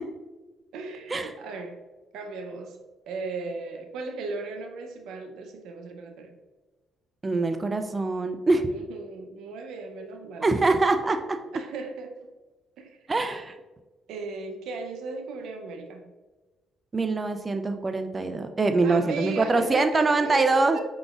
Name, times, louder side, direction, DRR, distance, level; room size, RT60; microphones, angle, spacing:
voice 1, 0.7-1.8 2.1-6.4 8.6-10.5 11.5-12.2 12.8-13.0 14.1-16.2 18.8-20.8, right 3 dB, 85° right, 5 dB, 0.6 m, -36 dB
voice 2, 7.2-8.7 10.4-11.2 13.1-13.5 16.9-20.8, right 3 dB, 30° right, 7 dB, 0.3 m, -24 dB
4.9 x 3.8 x 2.4 m, 1.2 s
cardioid pair, 90°, 0 cm